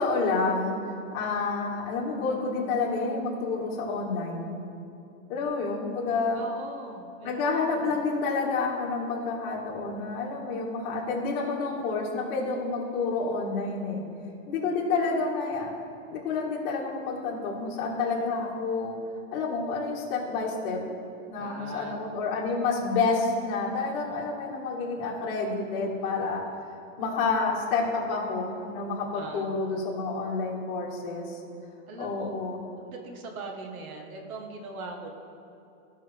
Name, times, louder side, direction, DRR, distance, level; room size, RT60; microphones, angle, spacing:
voice 1, 0.0-4.6 5.3-6.4 7.2-14.0 14.5-15.7 16.1-19.0 19.3-20.8 21.3-26.4 27.0-31.4 32.0-32.6, left 4 dB, 45° left, -4 dB, 2.1 m, -29 dB
voice 2, 6.3-7.9 21.4-22.0 29.1-29.9 31.9-32.3 32.8-35.1, right 3 dB, 85° right, 3 dB, 1.6 m, -41 dB
15.5 x 5.6 x 3.5 m, 2.7 s
supercardioid pair, 160°, 41 cm